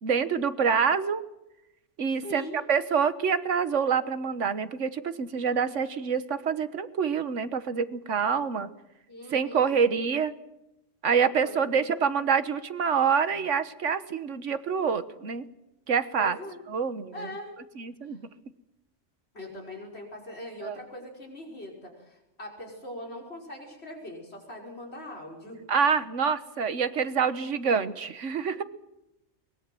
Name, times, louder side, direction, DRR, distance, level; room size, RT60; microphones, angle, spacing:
voice 1, 0.0-1.2 2.0-8.7 9.3-10.3 11.0-15.4 15.9-16.4 16.7-17.3 17.8-18.2 20.6-20.8 25.7-28.6, right 6 dB, 80° right, 12 dB, 1.5 m, -26 dB
voice 2, 2.2-2.6 9.1-9.8 11.4-11.8 16.1-16.6 17.1-17.5 18.1-18.2 19.3-25.6, left 1 dB, 60° left, 0 dB, 5.7 m, -41 dB
22.0 x 21.0 x 7.7 m, 0.89 s
omnidirectional pair, 1.2 m